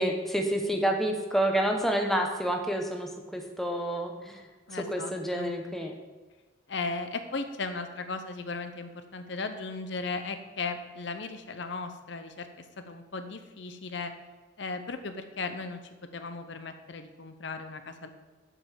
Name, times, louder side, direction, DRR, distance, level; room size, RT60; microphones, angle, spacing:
voice 1, 0.0-4.4 4.7-5.9, right 1 dB, ahead, 2 dB, 0.8 m, -29 dB
voice 2, 4.7-5.5 6.7-12.5 12.9-14.1 14.6-15.8 16.1-18.1, left 3 dB, 60° left, 8 dB, 0.7 m, -36 dB
7.9 x 5.2 x 7.3 m, 1.3 s
head